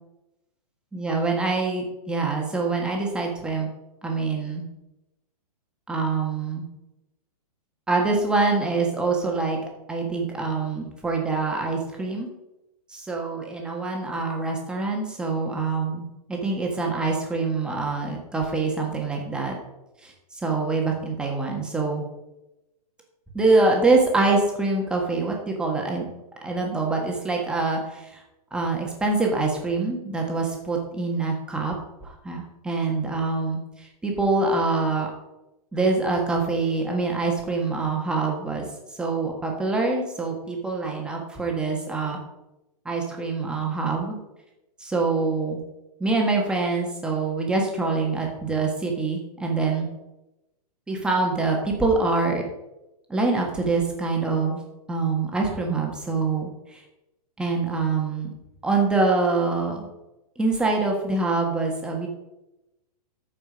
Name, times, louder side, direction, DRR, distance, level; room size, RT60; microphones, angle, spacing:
voice 1, 0.9-3.7 4.0-4.7 5.9-6.7 7.9-9.6 9.9-12.3 12.9-19.6 20.0-22.0 23.3-26.1 26.4-28.2 28.5-31.7 32.0-35.1 35.7-38.7 38.9-42.2 42.8-44.2 44.8-45.6 46.0-49.9 50.9-52.4 53.1-54.6 54.9-56.8 57.4-58.3 58.6-59.9 60.4-62.1, right 3 dB, 5° right, 0 dB, 1.3 m, -25 dB
13.5 x 5.1 x 5.1 m, 0.97 s
hypercardioid pair, 165°, 20 cm